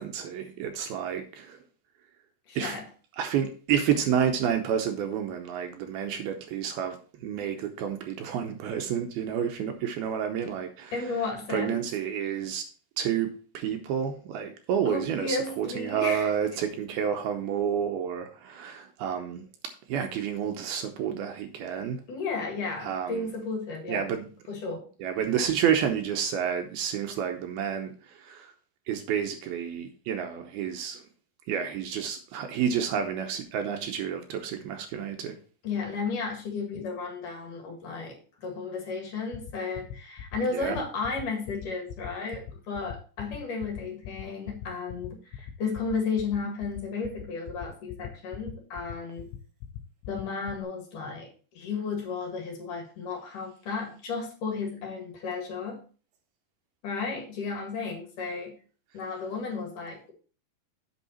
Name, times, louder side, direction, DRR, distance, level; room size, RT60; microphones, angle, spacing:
voice 1, 0.0-1.6 2.6-2.8 3.2-11.1 11.5-12.6 13.0-19.5 19.9-22.0 22.8-23.3 23.9-24.3 25.0-28.5 28.9-31.1 31.5-35.4 40.5-40.8, right 8 dB, 80° right, 2.5 m, -30 dB
voice 2, 2.5-2.8 10.9-11.8 14.9-16.3 22.1-24.0 24.5-24.8 35.6-49.3 50.1-51.3 51.5-55.8 56.8-58.5 58.9-60.1, left 4 dB, 55° left, 3.1 m, -33 dB
sound 1, 39.3-50.6, left 9 dB, 85° left, 3.0 m, -39 dB
8.3 x 6.4 x 4.3 m
omnidirectional pair, 4.8 m